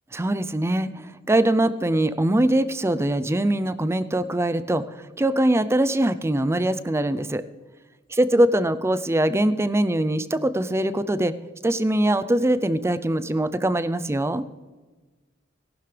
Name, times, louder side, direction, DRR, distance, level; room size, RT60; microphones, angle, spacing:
voice 1, 0.1-7.4 8.1-11.3 11.6-14.5, right 1 dB, 15° right, 13 dB, 0.5 m, -22 dB
18.5 x 11.5 x 3.3 m, 1.3 s
head